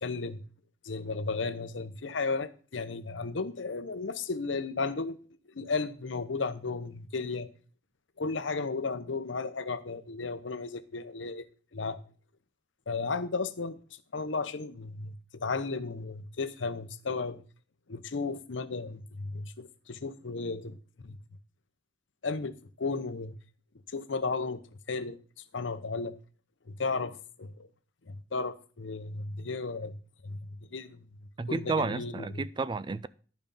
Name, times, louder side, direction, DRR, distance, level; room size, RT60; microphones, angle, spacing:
voice 1, 0.0-0.4 0.8-5.2 5.5-7.5 8.2-11.5 11.7-12.0 12.9-17.4 17.9-20.8 21.0-21.2 22.2-23.3 23.9-24.6 24.9-25.2 25.5-26.2 26.7-27.7 28.1-30.0 30.2-31.1 31.5-32.3, left 4 dB, 90° left, 0.8 m, -34 dB
voice 2, 31.4-33.1, right 4 dB, 25° right, 0.3 m, -31 dB
11.5 x 5.3 x 5.3 m
head